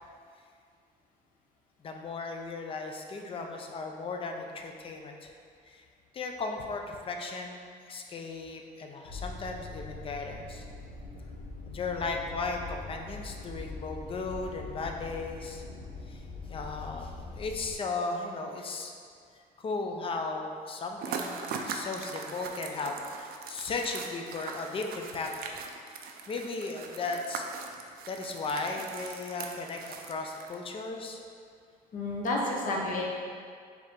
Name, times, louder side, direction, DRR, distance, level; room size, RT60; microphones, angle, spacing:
voice 1, 1.8-5.3 5.7-5.9 6.1-10.6 11.7-15.7 16.1-16.2 16.5-18.9 19.6-25.5 26.3-27.8 28.1-31.2, left 3 dB, 30° left, 3 dB, 0.4 m, -36 dB
sound 1, 9.0-17.8, left 3 dB, 90° left, 0.8 m, -42 dB
sound 2, 21.0-30.7, right 5 dB, 65° right, 0.4 m, -41 dB
voice 2, 31.9-33.0, left 2 dB, 50° left, -2 dB, 0.8 m, -30 dB
4.6 x 2.7 x 3.6 m, 2.2 s
cardioid pair, 110°, 17 cm